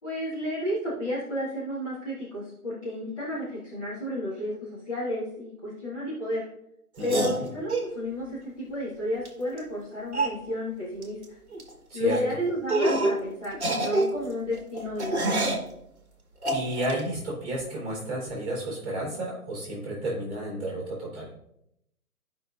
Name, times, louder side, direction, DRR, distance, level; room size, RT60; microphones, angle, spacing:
voice 1, 0.0-6.5 7.0-11.4 11.9-15.5, left 1 dB, 20° left, -10 dB, 1.5 m, -32 dB
voice 2, 7.0-7.4 11.9-12.2 16.5-21.3, right 1 dB, 10° right, -5 dB, 3.3 m, -32 dB
sound 1, 7.0-7.9 9.2-9.3 9.6-9.7 10.1-10.4 11.0-11.2 11.5-11.7 12.1-12.2 12.7-13.2 13.5-15.7 16.4-17.0, right 2 dB, 45° right, 1.4 m, -27 dB
12.5 x 5.4 x 2.5 m, 0.78 s
figure-of-eight pair, 145°, 45 cm